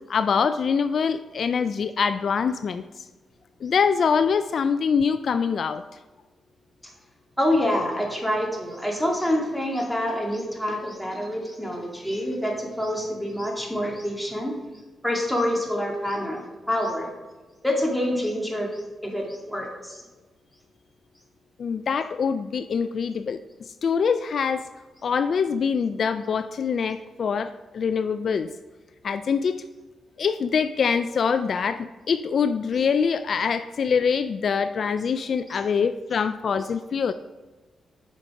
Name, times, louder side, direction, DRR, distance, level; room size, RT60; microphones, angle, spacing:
voice 1, 0.1-2.8 3.6-5.8 21.6-23.4 23.8-24.7 25.0-28.5 29.0-29.6 30.2-37.1, left 6 dB, 60° left, 11 dB, 0.3 m, -24 dB
voice 2, 7.4-14.6 15.0-17.1 17.6-20.0, left 1 dB, ahead, -1 dB, 2.0 m, -27 dB
7.5 x 5.2 x 4.8 m, 1.3 s
cardioid pair, 70°, 0 cm